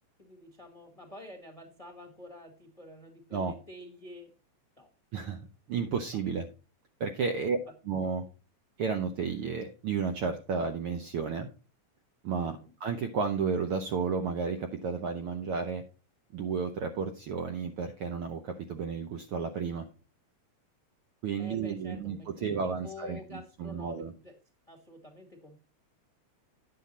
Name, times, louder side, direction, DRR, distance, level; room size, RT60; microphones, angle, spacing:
voice 1, 0.2-4.3 4.8-4.9 7.5-7.6 12.4-12.7 21.4-22.5 22.8-24.3 24.7-25.6, left 1 dB, 20° left, 4 dB, 1.0 m, -48 dB
voice 2, 5.7-6.5 7.0-7.6 7.8-8.3 8.8-11.5 12.2-15.8 16.3-19.9 21.2-24.1, right 5 dB, 70° right, 5 dB, 1.4 m, -32 dB
9.8 x 7.0 x 4.1 m, 0.33 s
omnidirectional pair, 3.4 m